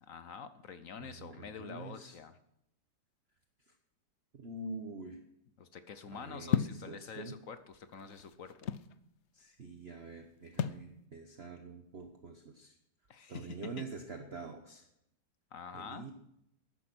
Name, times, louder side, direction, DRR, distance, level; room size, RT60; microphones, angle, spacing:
voice 1, 0.0-2.4 5.6-8.8 13.1-13.8 15.5-16.1, left 6 dB, 55° left, 12 dB, 1.0 m, -47 dB
voice 2, 1.0-2.2 4.3-5.2 6.1-7.4 9.3-12.7 13.3-14.9 15.7-16.1, right 3 dB, 40° right, 5 dB, 1.2 m, -46 dB
sound 1, 6.5-6.9 7.7-8.9 10.6-10.9, left 8 dB, 75° left, 0.6 m, -32 dB
14.0 x 11.0 x 6.1 m, 0.79 s
omnidirectional pair, 1.9 m